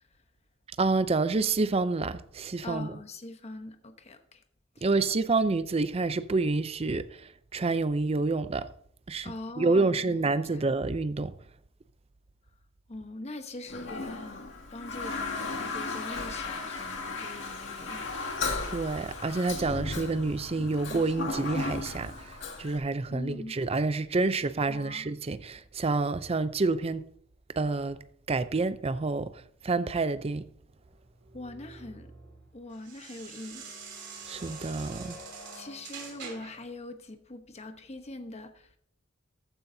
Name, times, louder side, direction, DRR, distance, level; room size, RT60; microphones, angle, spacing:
voice 1, 0.8-2.9 4.8-7.3 7.5-8.7 9.1-11.3 18.7-22.3 22.6-27.0 27.6-28.0 28.3-29.3 29.6-30.4 34.3-35.1, right 3 dB, 30° right, 0.5 m, -28 dB
voice 2, 2.6-4.4 4.7-4.9 9.2-10.1 10.5-10.6 12.9-18.1 23.1-23.6 24.7-25.1 31.3-32.1 32.5-33.8 35.5-38.8, left 2 dB, 30° left, 1.0 m, -43 dB
Toilet flush, 13.7-22.8, left 3 dB, 65° left, 2.1 m, -35 dB
sound 1, 30.8-36.7, right 4 dB, 60° right, 3.2 m, -45 dB
14.0 x 9.4 x 2.7 m
head